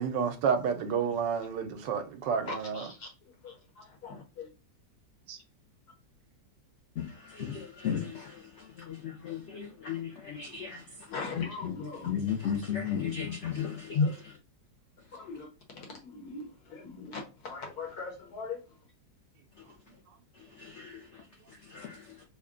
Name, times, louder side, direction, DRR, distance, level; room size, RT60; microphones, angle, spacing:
voice 1, 0.0-2.9 5.3-5.4, right 6 dB, 80° right, 1.3 m, -30 dB
voice 2, 2.5-3.1 3.4-3.5 4.0-4.5 11.1-12.1 13.9-14.1 15.2-15.5 15.8-18.6, left 4 dB, 60° left, 1.3 m, -36 dB
voice 3, 7.0-8.5 8.8-14.0 20.6-21.0 21.7-22.1, left 8 dB, 80° left, 0.6 m, -35 dB
3.6 x 2.1 x 3.6 m
omnidirectional pair, 2.0 m